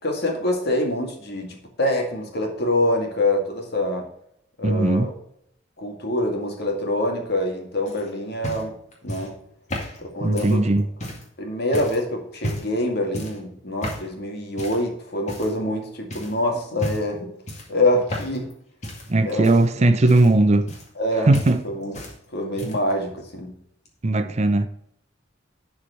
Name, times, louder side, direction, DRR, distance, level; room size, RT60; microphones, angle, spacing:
voice 1, 0.0-4.1 4.6-5.1 5.8-8.7 9.0-9.3 10.0-10.6 11.4-17.2 17.7-18.5 19.2-19.5 20.1-20.2 21.0-21.3 21.6-22.0 22.3-23.6, left 1 dB, 55° left, 2.1 m, -25 dB
voice 2, 4.6-5.1 10.2-10.8 19.1-20.7 21.3-21.6 22.6-22.7 24.0-24.7, right 2 dB, 35° right, 0.6 m, -18 dB
sound 1, 7.9-11.3 11.7-12.0 12.4-12.8 13.1-13.4 13.8-14.1 14.6-14.9 15.3-15.8 16.1-16.3 16.8-17.2 17.5-18.5 18.8-21.1 21.3-22.2 22.4-22.9 23.9-24.0, equal, 35° left, 2.0 m, -33 dB
11.0 x 4.7 x 4.5 m
head